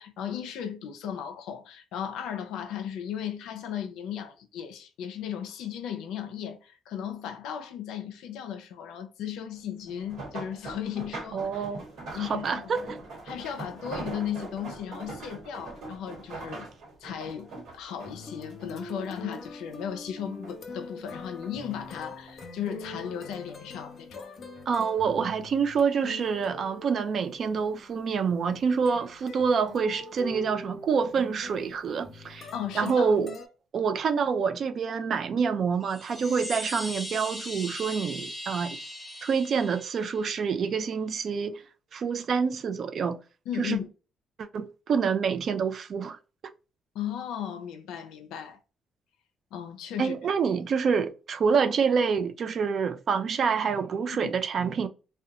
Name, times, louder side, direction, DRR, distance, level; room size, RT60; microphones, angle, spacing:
voice 1, 0.0-11.7 12.1-12.8 13.3-16.7 17.0-24.3 32.5-33.1 43.5-43.9 46.9-48.6 49.5-50.1 54.2-54.3, left 9 dB, 90° left, 0.4 m, -36 dB
sound 1, 9.9-19.4 19.8-20.7 21.1-22.5 23.2-23.5 23.9-24.0, right 3 dB, 80° right, 1.1 m, -42 dB
voice 2, 11.3-13.0 24.7-32.5 32.7-33.4 33.7-38.8 39.2-41.6 41.9-43.2 43.6-43.8 44.4-46.2 46.4-46.5 50.0-54.9, right 6 dB, 55° right, 0.3 m, -27 dB
sound 2, 18.0-33.5, left 2 dB, 50° left, 0.7 m, -43 dB
Chime, 35.8-40.5, equal, 5° left, 0.6 m, -39 dB
2.7 x 2.2 x 2.4 m
cardioid pair, 90°, 0 cm